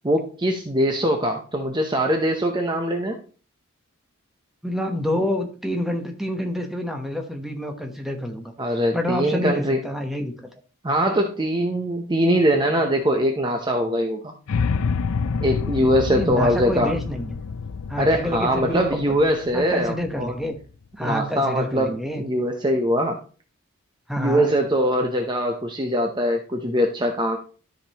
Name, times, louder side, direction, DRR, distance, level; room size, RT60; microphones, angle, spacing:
voice 1, 0.0-3.2 8.6-9.8 10.8-14.3 15.4-16.9 18.0-20.3 21.0-23.2 24.2-27.4, equal, 20° right, 4 dB, 0.7 m, -22 dB
voice 2, 4.6-8.5 8.9-10.5 16.1-17.4 17.9-19.2 19.5-20.5 21.0-22.2 24.1-24.5, left 1 dB, ahead, 3 dB, 1.0 m, -28 dB
sound 1, 14.5-20.6, left 5 dB, 80° left, 0.5 m, -28 dB
13.0 x 5.2 x 2.9 m, 0.38 s
head